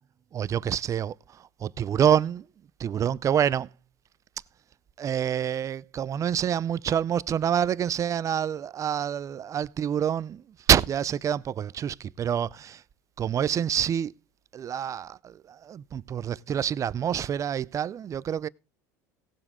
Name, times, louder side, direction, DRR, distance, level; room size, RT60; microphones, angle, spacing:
voice 1, 0.3-2.4 2.8-3.7 5.0-10.4 10.7-12.8 13.2-14.1 14.5-18.5, right 9 dB, 35° right, 0.5 m, -27 dB
18.0 x 7.0 x 3.7 m
supercardioid pair, 95°, 10 cm